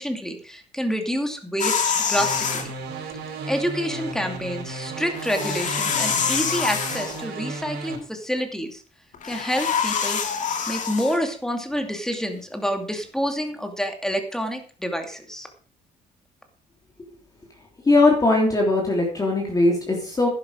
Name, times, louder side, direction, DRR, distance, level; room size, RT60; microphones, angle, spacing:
voice 1, 0.0-1.8 2.1-2.7 3.5-8.8 9.2-10.2 10.7-15.5, equal, 5° left, 5 dB, 2.5 m, -28 dB
sound 1, 1.6-2.7 5.1-7.3 9.1-11.2, left 6 dB, 45° left, 2.5 m, -25 dB
sound 2, 2.1-8.0, right 3 dB, 75° right, 4.9 m, -34 dB
voice 2, 17.9-20.3, left 2 dB, 20° left, -1 dB, 3.4 m, -19 dB
11.0 x 11.0 x 5.0 m, 0.42 s
cardioid pair, 110°, 17 cm